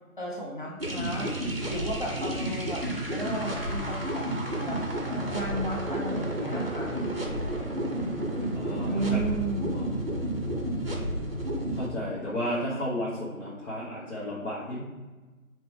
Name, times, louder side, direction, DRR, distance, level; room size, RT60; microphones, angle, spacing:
voice 1, 0.2-4.8 5.3-6.9 8.9-9.9, right 2 dB, 35° left, -2 dB, 0.6 m, -34 dB
sound 1, 0.8-11.9, right 1 dB, 45° right, 0.5 m, -31 dB
voice 2, 8.5-9.2 9.7-10.5 11.7-14.8, equal, 55° left, -8 dB, 1.1 m, -33 dB
4.4 x 3.0 x 3.1 m, 1.3 s
figure-of-eight pair, 170°, 44 cm